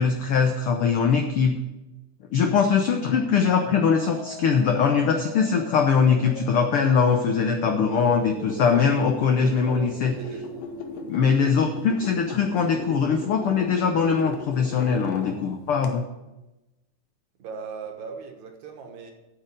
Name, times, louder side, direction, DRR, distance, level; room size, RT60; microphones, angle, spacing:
voice 1, 0.0-1.6 2.3-10.1 11.1-16.0, left 6 dB, 80° left, 4 dB, 1.2 m, -22 dB
sound 1, 2.9-14.5, right 3 dB, 50° right, 3.0 m, -41 dB
sound 2, 8.1-15.9, left 6 dB, 65° left, 1.8 m, -38 dB
voice 2, 9.3-10.6 17.4-19.1, right 5 dB, 65° right, 3 dB, 2.6 m, -39 dB
8.9 x 7.0 x 7.9 m, 1.0 s
omnidirectional pair, 3.6 m